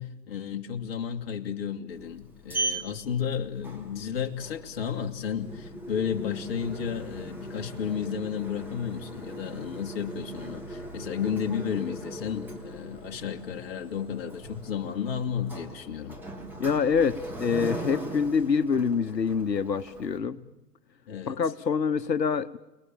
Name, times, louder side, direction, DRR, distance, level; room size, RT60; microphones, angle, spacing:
voice 1, 0.0-16.2 20.2-20.5 21.1-21.4, left 8 dB, 35° left, 2.3 m, -33 dB
Sliding door, 1.9-20.2, right 2 dB, 5° right, 2.8 m, -39 dB
voice 2, 16.6-20.4 21.3-22.6, left 6 dB, 80° left, 1.1 m, -26 dB
30.0 x 20.5 x 9.0 m
figure-of-eight pair, 125°, 49 cm